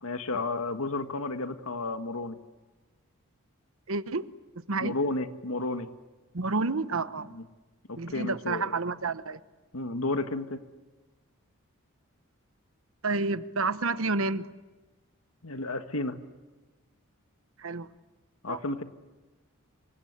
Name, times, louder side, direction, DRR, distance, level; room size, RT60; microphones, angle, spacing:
voice 1, 0.0-2.4 4.8-5.9 7.3-7.4 7.9-8.7 9.7-10.6 15.4-16.2 18.4-18.8, left 2 dB, 80° left, 8 dB, 1.8 m, -32 dB
voice 2, 3.9-4.3 4.7-5.0 6.3-7.4 8.0-9.4 13.0-14.5 17.6-17.9 18.5-18.6, right 3 dB, 70° right, 14 dB, 1.0 m, -29 dB
27.0 x 25.0 x 8.2 m, 1.2 s
head